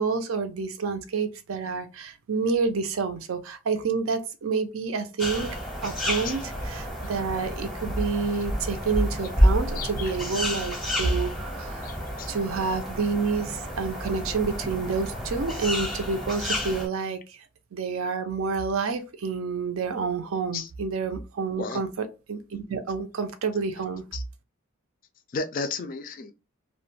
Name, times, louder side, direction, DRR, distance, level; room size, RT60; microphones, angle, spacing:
voice 1, 0.0-5.6 5.8-11.9 12.3-17.4 17.7-24.0, right 4 dB, 70° right, 0.5 m, -29 dB
sound 1, 5.2-16.9, equal, ahead, 0.6 m, -29 dB
voice 2, 9.7-10.1 11.8-12.3 20.5-20.7 21.6-21.8 24.1-24.2 25.3-26.3, left 4 dB, 40° left, 0.3 m, -33 dB
2.3 x 2.1 x 3.2 m
head